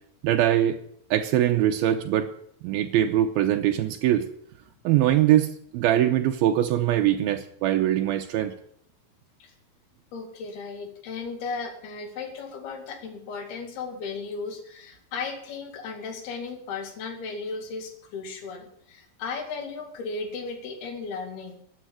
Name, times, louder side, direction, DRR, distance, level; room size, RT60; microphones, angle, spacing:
voice 1, 0.2-0.8 1.1-2.3 2.6-4.3 4.8-8.6, right 12 dB, 80° right, 5 dB, 2.6 m, -22 dB
voice 2, 10.1-21.6, left 4 dB, 80° left, 5 dB, 4.3 m, -35 dB
13.0 x 9.0 x 8.8 m, 0.70 s
omnidirectional pair, 4.4 m